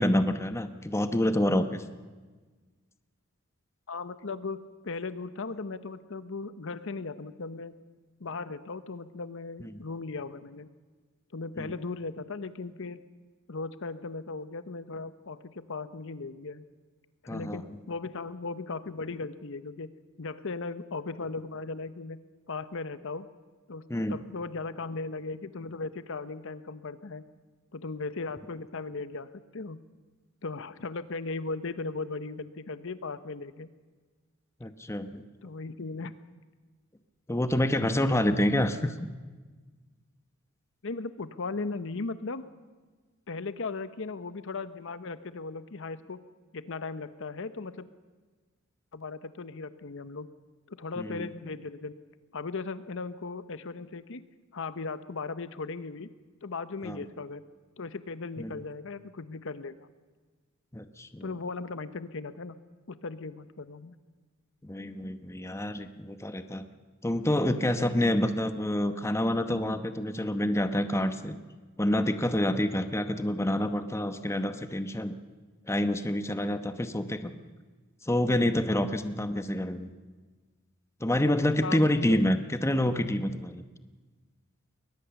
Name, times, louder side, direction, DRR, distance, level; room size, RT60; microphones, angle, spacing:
voice 1, 0.0-1.8 11.6-11.7 17.3-17.6 23.9-24.2 34.6-35.2 37.3-39.1 51.0-51.3 56.8-57.0 58.4-58.5 60.7-61.3 64.6-66.6 67.0-71.4 71.8-75.1 75.7-77.3 78.0-79.9 81.0-83.6, left 1 dB, 15° left, 10 dB, 0.9 m, -27 dB
voice 2, 3.9-7.8 8.2-10.7 11.3-13.0 13.5-16.7 17.2-19.9 20.2-22.2 22.5-23.3 23.7-27.2 27.7-29.8 30.4-33.7 35.4-36.1 40.8-42.4 43.3-46.2 46.5-47.9 48.9-50.3 50.7-51.9 52.3-54.2 54.5-56.1 56.4-57.4 57.8-59.8 61.2-62.6 62.9-64.0 81.6-82.2, left 3 dB, 65° left, 13 dB, 0.9 m, -37 dB
22.0 x 19.0 x 7.0 m, 1.4 s
head